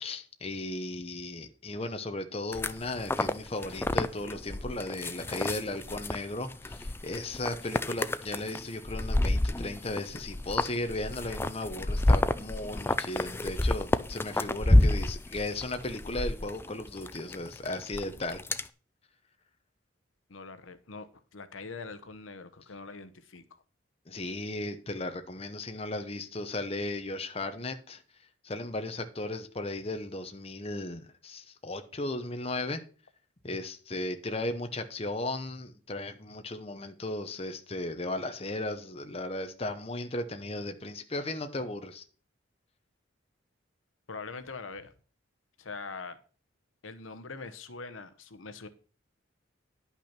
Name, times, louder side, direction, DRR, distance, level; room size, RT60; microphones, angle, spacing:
voice 1, 0.0-18.4 24.1-28.0 28.4-32.8 33.4-42.0, left 2 dB, 30° left, 0.9 m, -36 dB
sound 1, 2.5-18.7, left 1 dB, 10° left, 0.4 m, -29 dB
voice 2, 20.3-23.6 44.1-44.9 45.6-46.2 46.8-48.7, left 4 dB, 75° left, 0.9 m, -43 dB
10.5 x 5.8 x 5.9 m
head